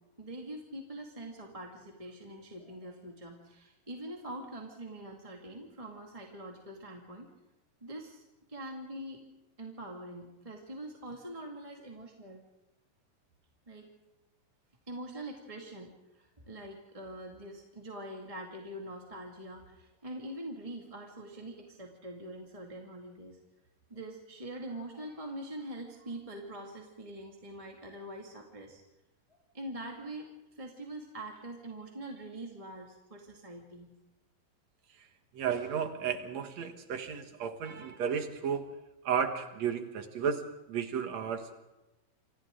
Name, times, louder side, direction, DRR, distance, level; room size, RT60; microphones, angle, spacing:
voice 1, 0.2-7.3 7.8-9.3 9.6-12.4 13.7-13.9 14.9-23.4 23.9-28.8 29.3-33.9, right 1 dB, 10° right, 0 dB, 1.7 m, -44 dB
voice 2, 35.3-38.7 39.0-41.6, right 7 dB, 55° right, 7 dB, 2.6 m, -33 dB
28.5 x 26.5 x 3.9 m, 1.0 s
omnidirectional pair, 4.0 m